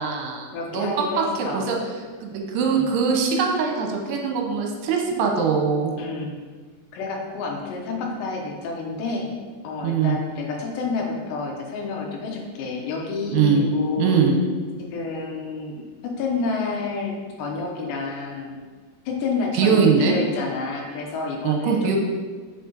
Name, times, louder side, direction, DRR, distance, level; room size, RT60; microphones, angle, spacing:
voice 1, 0.0-0.5 0.7-0.9 1.4-1.8 2.2-5.9 9.8-10.2 13.3-13.6 14.0-14.4 19.5-20.1 21.4-22.0, right 6 dB, 80° right, 1 dB, 2.8 m, -21 dB
voice 2, 0.5-1.7 2.6-2.9 6.0-6.4 6.9-9.3 9.6-14.1 14.8-18.6 19.1-22.0, left 4 dB, 80° left, 0 dB, 3.2 m, -29 dB
6.6 x 5.3 x 3.9 m, 1.5 s
omnidirectional pair, 4.9 m